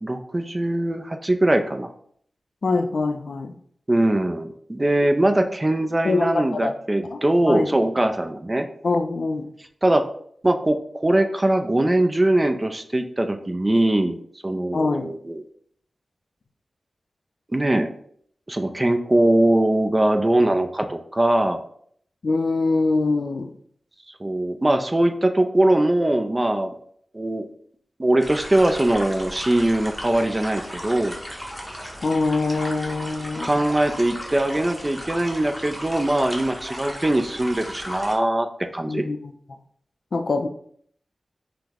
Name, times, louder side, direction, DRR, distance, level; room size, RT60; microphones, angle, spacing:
voice 1, 0.0-1.9 3.9-8.7 9.8-10.1 10.4-15.4 17.5-17.9 18.5-21.6 24.2-26.7 27.1-27.5 28.0-31.2 33.4-38.5 38.7-39.0, right 1 dB, 20° right, 6 dB, 0.3 m, -21 dB
voice 2, 2.6-3.5 6.0-6.7 7.1-7.2 7.5-7.7 8.8-9.5 14.7-15.1 22.2-23.5 32.0-33.6 38.9-39.3 40.1-40.5, left 3 dB, 60° left, 7 dB, 0.4 m, -23 dB
sound 1, 28.2-38.2, equal, 5° left, 0.8 m, -35 dB
5.7 x 2.0 x 3.4 m, 0.63 s
wide cardioid pair, 120°, 0 cm